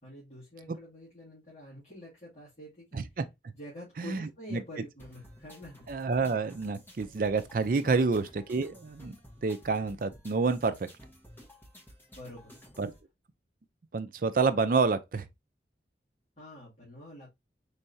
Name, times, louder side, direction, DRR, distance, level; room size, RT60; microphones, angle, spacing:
voice 1, 0.0-3.0 3.5-5.9 7.8-8.1 12.2-12.5 16.4-17.3, left 1 dB, 35° left, 2.1 m, -47 dB
voice 2, 2.9-3.2 4.0-4.6 5.9-9.2 9.4-10.9 12.8-12.9 13.9-15.3, right 4 dB, 50° right, 0.4 m, -28 dB
sound 1, 5.0-13.0, equal, 10° left, 1.1 m, -54 dB
4.6 x 3.2 x 2.7 m
head